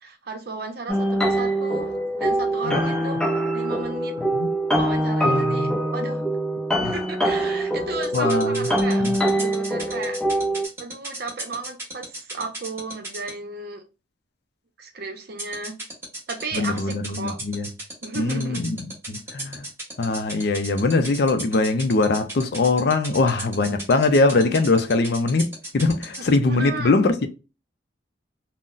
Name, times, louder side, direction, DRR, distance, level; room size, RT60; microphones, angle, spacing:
voice 1, 0.0-1.9 2.1-3.2 3.5-4.2 4.7-6.2 6.8-9.1 9.4-10.2 10.8-13.8 14.8-15.7 16.3-17.4 18.0-18.6 26.5-27.0, right 3 dB, 55° right, 0.6 m, -34 dB
sound 1, 0.9-10.6, right 1 dB, 5° left, 0.6 m, -24 dB
voice 2, 5.2-5.8 6.8-6.9 8.1-8.7 9.0-9.2 16.5-17.7 18.1-18.8 19.1-19.7 20.0-27.3, left 3 dB, 55° left, 0.4 m, -22 dB
sound 2, 8.0-13.3 15.4-26.3, right 1 dB, 15° right, 1.0 m, -34 dB
3.8 x 2.1 x 2.4 m
head